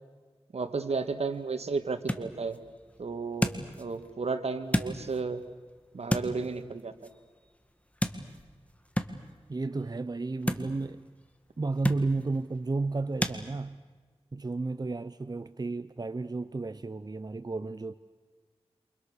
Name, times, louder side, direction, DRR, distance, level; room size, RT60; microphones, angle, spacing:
voice 1, 0.5-2.6 3.0-3.5 3.8-5.4 5.9-6.9, right 4 dB, 75° right, 2.0 m, -33 dB
sound 1, 0.9-13.4, left 1 dB, 10° left, 2.1 m, -36 dB
voice 2, 9.5-11.0 11.6-13.8 14.3-17.9, right 3 dB, 40° right, 0.8 m, -32 dB
29.0 x 27.5 x 6.7 m
wide cardioid pair, 65°, 11 cm